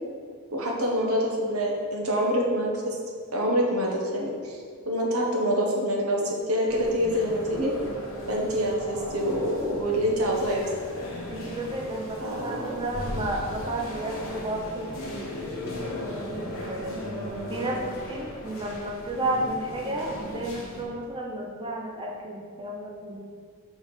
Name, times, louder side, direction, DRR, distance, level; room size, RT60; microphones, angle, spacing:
voice 1, 0.5-3.0 3.3-4.6 4.9-7.7 8.3-10.7 12.2-12.9, equal, 85° right, -1 dB, 1.2 m, -26 dB
sound 1, 6.7-20.8, left 1 dB, 65° left, 1.3 m, -37 dB
voice 2, 11.3-17.0 17.5-23.3, right 1 dB, 25° right, -1 dB, 0.6 m, -33 dB
5.2 x 4.1 x 5.3 m, 2.1 s
head